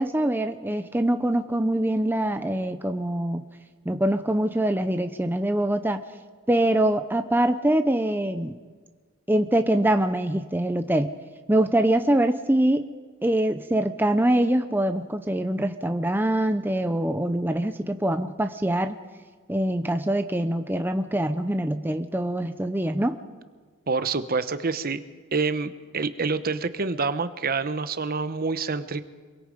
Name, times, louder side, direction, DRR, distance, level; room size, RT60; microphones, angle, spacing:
voice 1, 0.0-3.4 3.9-6.0 6.5-8.6 9.3-11.1 11.5-12.9 13.2-19.0 19.5-23.2, right 1 dB, 10° right, 7 dB, 0.7 m, -24 dB
voice 2, 23.9-25.0 25.3-29.0, right 4 dB, 45° right, 11 dB, 1.0 m, -27 dB
26.0 x 23.0 x 5.2 m, 1.5 s
head